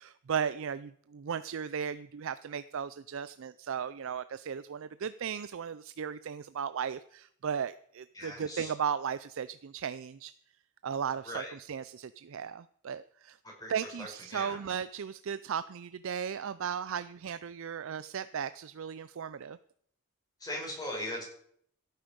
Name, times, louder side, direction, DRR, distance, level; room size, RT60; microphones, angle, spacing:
voice 1, 0.0-10.3 10.8-13.4 13.7-19.6, right 7 dB, 60° right, 14 dB, 0.4 m, -36 dB
voice 2, 8.2-8.7 11.3-11.5 13.6-14.6 20.4-21.2, left 1 dB, 20° left, -1 dB, 5.4 m, -39 dB
16.0 x 9.2 x 5.2 m, 0.65 s
head